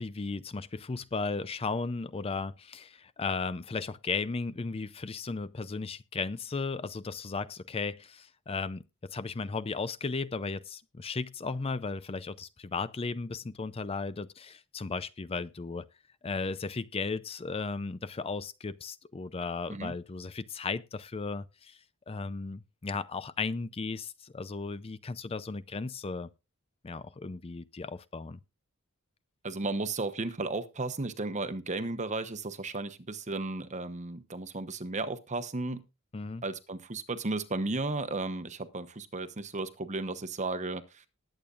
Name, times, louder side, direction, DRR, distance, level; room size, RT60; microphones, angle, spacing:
voice 1, 0.0-15.8 16.2-21.8 22.1-26.3 26.8-28.4 36.1-36.4, left 4 dB, 25° left, 0.5 m, -35 dB
voice 2, 29.4-35.8 36.4-41.0, right 3 dB, 35° right, 1.0 m, -34 dB
20.0 x 8.7 x 2.5 m
head